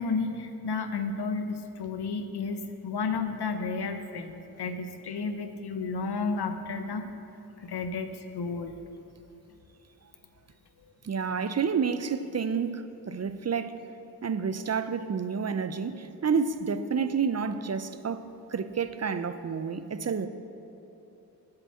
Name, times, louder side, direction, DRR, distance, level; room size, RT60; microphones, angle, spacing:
voice 1, 0.0-7.1 7.6-8.8, left 4 dB, 70° left, 8 dB, 0.9 m, -32 dB
voice 2, 11.0-13.7 14.2-20.3, right 6 dB, 40° right, 11 dB, 0.5 m, -29 dB
8.3 x 6.9 x 7.6 m, 2.9 s
cardioid pair, 50°, 41 cm